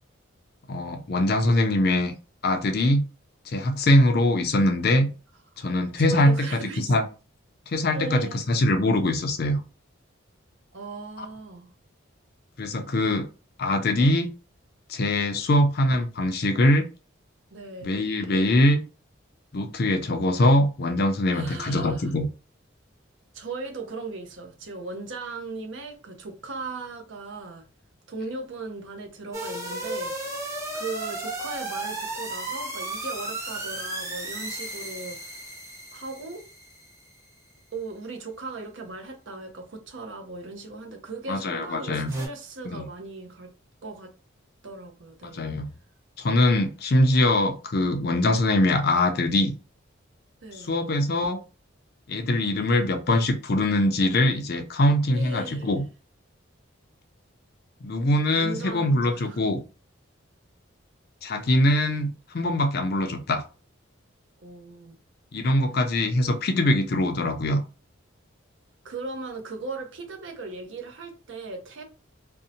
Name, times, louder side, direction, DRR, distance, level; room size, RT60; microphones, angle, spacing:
voice 1, 0.7-2.1 2.4-3.1 3.5-5.1 5.6-6.5 6.8-7.0 7.7-9.6 11.2-11.3 12.6-13.3 13.6-14.3 14.9-16.9 17.8-18.8 19.5-22.3 41.3-42.1 42.7-42.9 45.2-45.7 46.2-49.5 50.5-51.4 52.1-55.8 57.8-59.6 61.2-63.4 65.3-67.6, left 1 dB, 50° left, 0.4 m, -22 dB
voice 2, 6.0-6.9 7.9-8.4 10.7-11.7 17.5-18.0 21.3-22.1 23.3-27.7 28.1-30.4 30.7-35.4 35.9-36.5 37.7-43.5 43.8-44.1 44.6-45.5 50.4-50.7 55.1-55.7 58.3-59.4 64.4-65.0 68.8-71.8, right 3 dB, 65° right, 0.6 m, -38 dB
sound 1, 29.3-37.2 42.1-42.3, right 2 dB, 15° right, 0.6 m, -34 dB
2.6 x 2.1 x 2.7 m
head